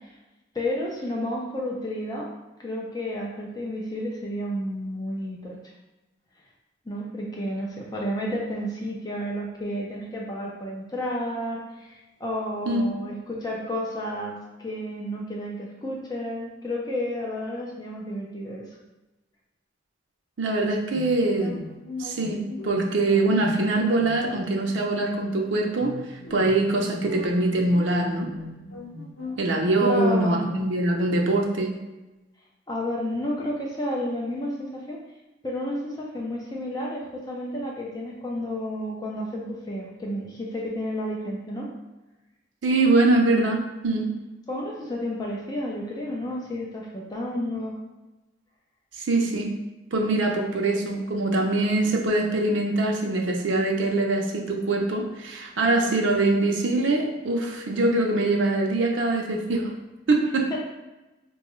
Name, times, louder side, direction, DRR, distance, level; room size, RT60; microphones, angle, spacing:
voice 1, 0.5-2.3 2.6-5.6 6.9-18.7 29.8-30.4 32.7-35.0 35.4-41.7 44.5-47.8 50.1-50.3 60.5-60.6, left 1 dB, 20° left, -3 dB, 0.4 m, -31 dB
voice 2, 20.4-21.6 22.0-28.3 29.4-31.8 42.6-44.1 48.9-49.5 49.9-59.7 60.1-60.5, right 2 dB, 80° right, 1 dB, 0.5 m, -23 dB
sound 1, 20.9-30.7, left 2 dB, 90° left, 0.6 m, -39 dB
3.8 x 2.3 x 3.0 m, 1.1 s
head